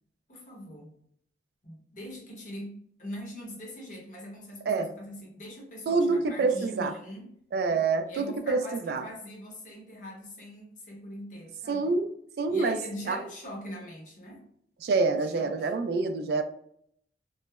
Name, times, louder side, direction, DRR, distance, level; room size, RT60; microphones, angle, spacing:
voice 1, 0.3-0.9 1.6-7.3 8.1-12.0 12.5-14.5 15.4-15.5, equal, 45° left, -1 dB, 0.8 m, -42 dB
voice 2, 5.9-6.9 7.5-9.0 11.7-12.1 12.4-12.8 13.1-13.2 14.8-16.4, right 4 dB, 65° right, 8 dB, 0.3 m, -26 dB
3.0 x 2.0 x 2.2 m, 0.68 s
head